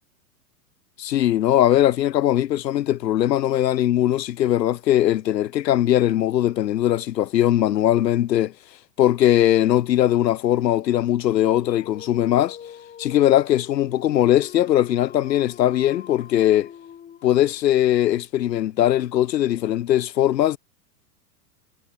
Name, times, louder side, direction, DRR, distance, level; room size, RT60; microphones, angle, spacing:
voice 1, 1.0-8.5 9.0-12.6 13.0-16.7 17.2-20.6, left 12 dB, 85° left, 0.9 m, -20 dB
Dog, 11.2-17.6, left 8 dB, 20° left, 2.7 m, -43 dB
hypercardioid pair, 130°, 49 cm